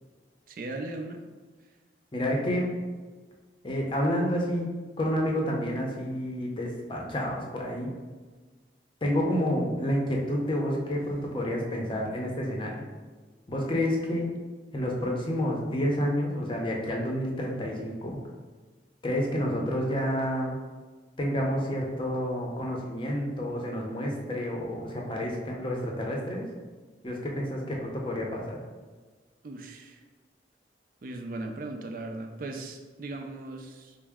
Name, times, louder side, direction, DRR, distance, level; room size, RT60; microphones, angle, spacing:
voice 1, 0.5-1.2 29.4-30.0 31.0-34.0, right 2 dB, 50° right, 4 dB, 0.4 m, -38 dB
voice 2, 2.1-2.7 3.6-7.9 9.0-12.8 13.5-14.3 14.7-18.2 19.0-20.6 21.2-26.4 27.0-28.6, equal, 30° left, -1 dB, 0.6 m, -29 dB
4.6 x 2.0 x 3.5 m, 1.4 s
head